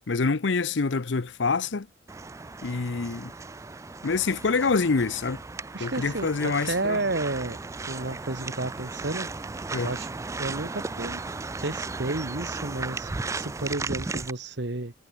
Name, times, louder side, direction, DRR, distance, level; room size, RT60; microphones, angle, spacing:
voice 1, 0.1-1.9 2.6-3.3 4.0-5.4 5.8-7.0 9.7-9.9, left 4 dB, 70° left, 0.7 m, -26 dB
sound 1, 2.1-14.3, right 3 dB, 15° right, 0.3 m, -35 dB
voice 2, 5.7-7.6 7.9-9.3 9.8-10.1 10.4-11.2 11.6-14.9, right 2 dB, 60° right, 1.6 m, -31 dB
head